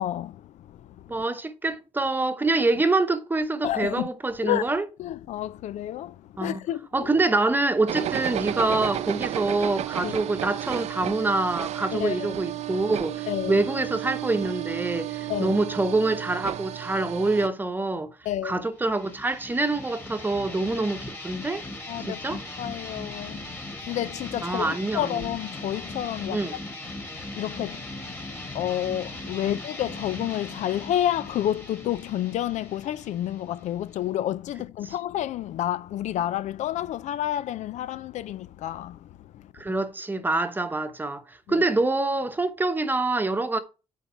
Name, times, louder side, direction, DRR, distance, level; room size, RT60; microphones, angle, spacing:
voice 1, 0.0-1.2 3.6-4.1 4.4-4.7 5.0-7.1 10.0-10.1 11.9-12.4 13.3-13.6 15.3-15.6 18.3-18.6 21.9-26.4 27.3-39.5 41.5-41.6, left 12 dB, 70° left, 0.4 m, -30 dB
voice 2, 1.1-4.8 6.4-6.6 6.9-18.1 18.4-21.6 22.1-22.4 24.4-25.1 26.3-26.5 29.4-29.5 39.5-43.6, right 2 dB, 15° right, 1.0 m, -26 dB
sound 1, 7.9-17.5, right 12 dB, 65° right, 0.5 m, -32 dB
sound 2, 18.8-34.2, left 2 dB, 20° left, 2.0 m, -39 dB
8.6 x 4.1 x 5.7 m
cardioid pair, 115°, 12 cm